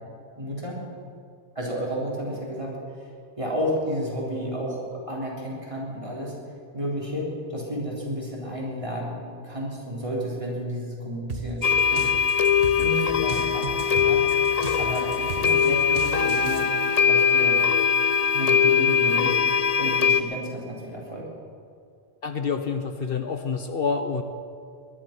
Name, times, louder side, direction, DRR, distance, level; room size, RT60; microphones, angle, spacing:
voice 1, 0.4-0.8 1.6-3.1 3.4-6.3 6.7-12.1 12.7-14.2 14.5-16.7 17.1-17.6 18.3-21.2, equal, 30° right, -4 dB, 3.7 m, -32 dB
sound 1, 11.3-16.6, right 5 dB, 65° right, 1.4 m, -36 dB
sound 2, 11.6-20.2, left 7 dB, 40° left, 0.7 m, -21 dB
voice 2, 22.2-24.2, left 5 dB, 60° left, 8 dB, 1.0 m, -27 dB
20.0 x 11.5 x 5.9 m, 2.3 s
omnidirectional pair, 1.1 m